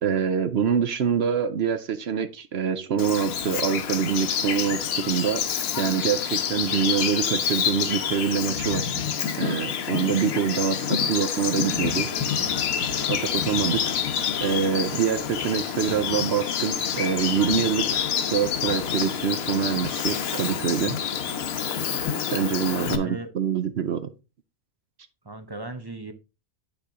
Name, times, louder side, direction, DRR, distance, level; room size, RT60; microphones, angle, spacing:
voice 1, 0.0-5.4 5.8-8.9 9.4-12.1 13.1-13.8 14.4-21.0 22.3-24.1, right 7 dB, 55° right, 11 dB, 0.8 m, -25 dB
Bird vocalization bird call bird song, 3.0-23.0, left 7 dB, 80° left, 1.3 m, -27 dB
voice 2, 22.8-23.3 25.2-26.1, right 2 dB, 25° right, 9 dB, 0.5 m, -37 dB
8.2 x 6.0 x 3.6 m, 0.28 s
omnidirectional pair, 1.4 m